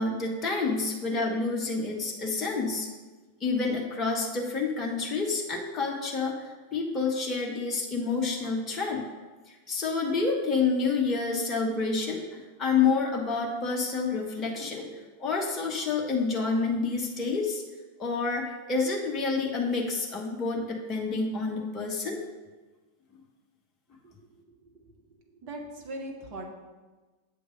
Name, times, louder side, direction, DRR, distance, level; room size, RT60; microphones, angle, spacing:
voice 1, 0.0-2.9 3.4-6.3 6.7-9.0 9.5-17.6 18.0-22.2, left 4 dB, 25° left, -2 dB, 1.0 m, -28 dB
voice 2, 24.0-24.7 25.4-26.5, right 1 dB, 40° right, 0 dB, 1.3 m, -40 dB
7.4 x 3.2 x 6.2 m, 1.3 s
figure-of-eight pair, 90°, 0 cm